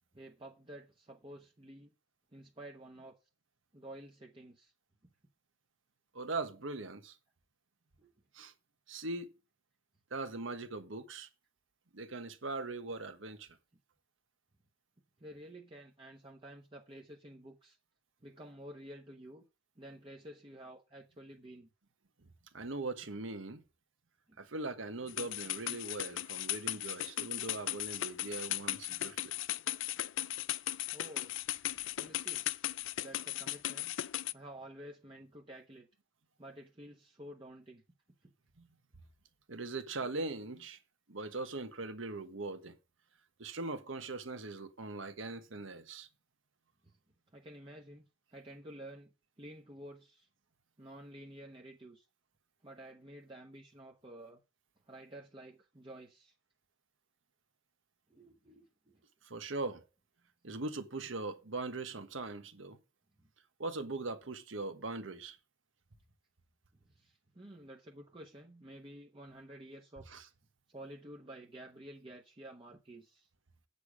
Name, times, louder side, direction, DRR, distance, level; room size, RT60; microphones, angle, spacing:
voice 1, 0.1-1.9 2.3-3.1 3.7-4.7 8.0-8.1 15.2-17.8 18.2-19.4 19.8-21.7 24.3-24.4 30.9-31.3 32.0-32.7 33.0-33.9 34.3-35.9 36.4-37.8 40.4-40.5 47.3-48.0 48.3-50.3 50.8-52.1 52.6-54.4 54.9-56.3 58.1-59.0 64.2-64.4 66.9-70.1 70.7-73.3, right 1 dB, 25° right, 1.0 m, -51 dB
voice 2, 6.1-7.2 8.3-8.5 8.9-9.3 10.1-11.3 11.9-13.5 22.5-23.6 24.4-29.3 38.6-38.7 39.5-40.8 41.1-42.8 43.4-46.1 59.2-59.8 60.4-62.8 63.6-65.4 70.1-70.3, right 3 dB, 85° right, 1.4 m, -40 dB
sound 1, 25.1-34.3, left 14 dB, 75° left, 0.4 m, -37 dB
8.5 x 7.0 x 4.8 m
head